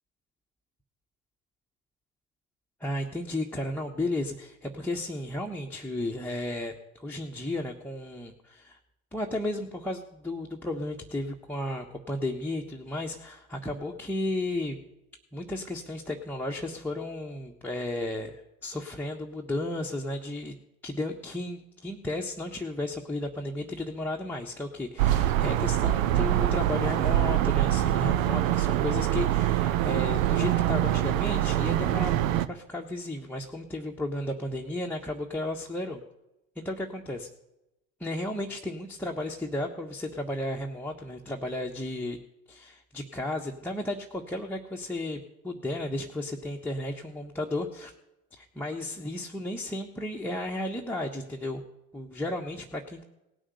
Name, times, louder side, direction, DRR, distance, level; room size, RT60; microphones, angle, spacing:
voice 1, 2.8-8.8 9.1-14.8 15.3-20.6 20.8-36.0 36.6-37.3 38.0-42.2 42.5-45.2 45.4-47.9 48.4-51.6 51.9-53.0, left 1 dB, 5° left, 2 dB, 1.3 m, -34 dB
sound 1, 25.0-32.5, right 12 dB, 70° right, 0.8 m, -24 dB
18.0 x 6.4 x 7.9 m, 0.92 s
hypercardioid pair, 65°, 42 cm